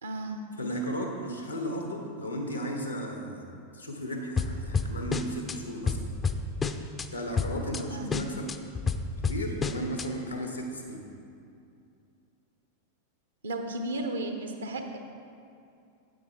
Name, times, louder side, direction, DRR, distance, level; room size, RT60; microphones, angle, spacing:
voice 1, 0.0-0.4 7.9-8.3 13.4-15.0, right 1 dB, 70° right, 5 dB, 0.9 m, -34 dB
voice 2, 0.6-3.4 3.7-6.0 7.1-8.5 9.2-11.0, equal, 85° left, 2 dB, 1.3 m, -35 dB
sound 1, 4.4-5.6 5.9-7.1 7.4-7.8 8.1-10.1, left 4 dB, 20° left, 0.5 m, -30 dB
8.7 x 8.2 x 4.6 m, 2.5 s
figure-of-eight pair, 90°, 0 cm